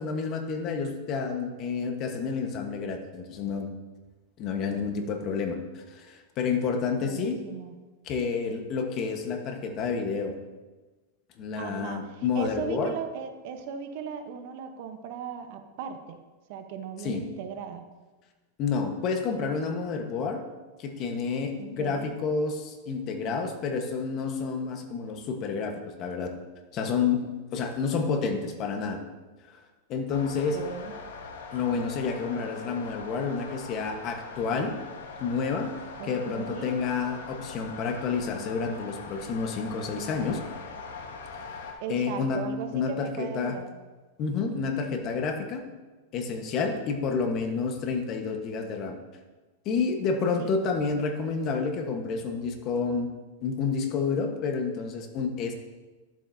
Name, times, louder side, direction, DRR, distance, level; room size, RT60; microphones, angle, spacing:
voice 1, 0.0-3.7 4.4-7.4 8.1-10.3 11.4-12.9 17.0-17.2 18.6-20.4 20.8-26.3 26.7-29.0 29.9-30.6 31.5-34.8 35.2-35.7 36.0-40.4 41.5-41.6 41.9-42.5 42.7-43.6 44.2-45.6 46.1-49.0 49.6-53.1 53.4-55.5, left 5 dB, 40° left, 5 dB, 1.2 m, -29 dB
voice 2, 6.9-7.7 11.6-16.2 16.5-17.8 21.6-22.1 30.5-30.9 36.0-36.7 41.8-43.7 50.4-50.5, right 7 dB, 55° right, 7 dB, 0.9 m, -37 dB
sound 1, 30.1-41.7, left 4 dB, 85° left, 1.2 m, -42 dB
11.5 x 7.5 x 2.7 m, 1.3 s
supercardioid pair, 135°, 0 cm